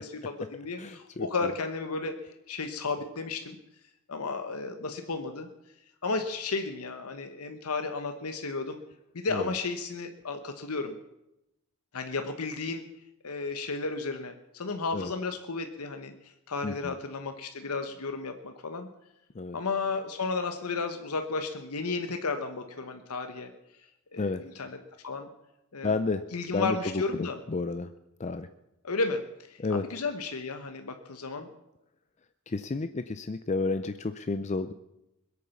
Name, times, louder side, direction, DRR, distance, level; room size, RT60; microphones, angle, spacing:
voice 1, 0.0-2.2 2.5-3.6 4.1-5.5 6.0-8.8 9.1-10.9 11.9-12.8 13.2-16.1 16.5-18.9 19.5-23.5 24.1-24.8 25.0-25.3 25.7-25.9 26.3-27.4 28.8-29.2 29.5-31.5, left 4 dB, 90° left, 7 dB, 1.1 m, -33 dB
voice 2, 0.8-1.5 9.3-9.5 14.9-15.1 16.6-16.9 19.4-19.6 24.2-24.4 25.8-26.2 26.5-27.9 28.2-28.5 29.6-29.8 32.5-34.7, left 3 dB, 30° left, 11 dB, 0.5 m, -31 dB
21.0 x 8.5 x 7.1 m, 0.88 s
head